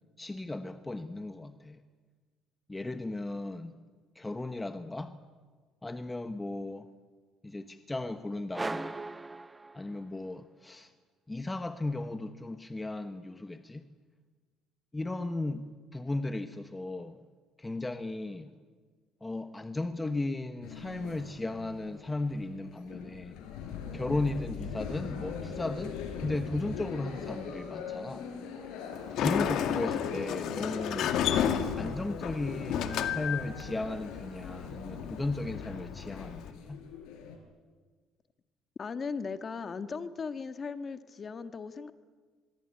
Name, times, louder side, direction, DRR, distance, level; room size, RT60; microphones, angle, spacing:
voice 1, 0.2-1.8 2.7-3.7 4.1-5.2 5.8-6.9 7.4-8.9 9.7-10.9 11.3-13.8 14.9-15.7 15.9-17.2 17.6-18.5 19.2-23.4 23.9-25.9 26.2-28.3 29.2-31.2 31.8-36.8, left 2 dB, 10° left, 9 dB, 1.1 m, -35 dB
sound 1, 8.5-10.3, right 2 dB, 10° right, 0.8 m, -38 dB
sound 2, 20.6-37.4, left 6 dB, 80° left, 5.0 m, -41 dB
Sliding door, 28.9-36.5, left 9 dB, 60° left, 2.1 m, -32 dB
voice 2, 38.8-41.9, left 5 dB, 30° left, 10 dB, 1.5 m, -37 dB
25.0 x 22.5 x 9.9 m, 1.5 s
cardioid pair, 125°, 0 cm